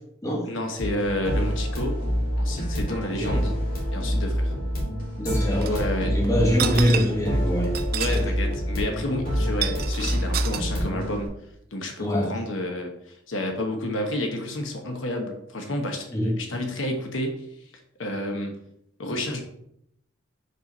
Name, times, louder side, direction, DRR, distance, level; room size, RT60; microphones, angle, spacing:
voice 1, 0.4-2.1 2.4-3.6 3.9-4.5 5.7-6.1 7.9-11.3 11.7-17.5 18.0-18.6 19.0-19.4, left 1 dB, 80° left, 4 dB, 1.1 m, -30 dB
sound 1, 0.8-11.3, equal, 45° left, 2.5 m, -27 dB
voice 2, 3.1-3.4 5.2-7.8 8.1-8.2 12.0-12.3 16.1-16.3, equal, 15° left, -1 dB, 1.5 m, -24 dB
sound 2, 5.6-5.8 6.5-7.3 7.6-8.3 8.5-8.6 9.4-10.6, right 10 dB, 50° right, 0.4 m, -30 dB
5.5 x 4.5 x 5.4 m, 0.74 s
head